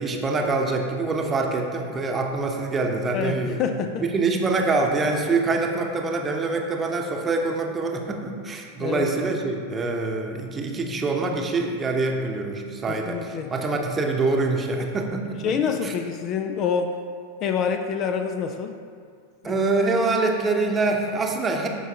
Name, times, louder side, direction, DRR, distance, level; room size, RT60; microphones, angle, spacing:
voice 1, 0.0-3.6 4.0-15.4 15.8-15.9 19.4-21.7, right 3 dB, 20° right, 2 dB, 0.9 m, -25 dB
voice 2, 3.1-4.0 8.8-9.1 12.9-13.5 13.8-14.1 15.4-17.0 17.4-18.8 19.4-19.5, left 6 dB, 35° left, 6 dB, 0.4 m, -27 dB
13.0 x 5.5 x 2.8 m, 2.2 s
figure-of-eight pair, 90°, 0 cm